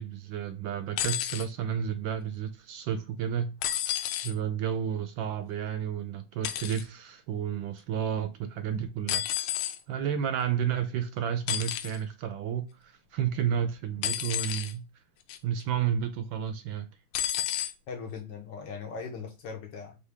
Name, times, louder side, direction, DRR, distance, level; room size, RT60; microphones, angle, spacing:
voice 1, 0.0-3.6 4.2-9.3 9.9-14.8 15.4-16.9, right 8 dB, 75° right, 1.2 m, -31 dB
sound 1, 1.0-1.5 3.6-4.3 6.4-6.8 9.1-9.8 11.5-12.0 14.0-14.7 15.3-15.6 17.1-17.7 18.7-18.8, left 11 dB, 85° left, 1.4 m, -31 dB
voice 2, 17.9-20.0, left 5 dB, 65° left, 1.2 m, -39 dB
4.6 x 2.7 x 3.4 m
omnidirectional pair, 2.3 m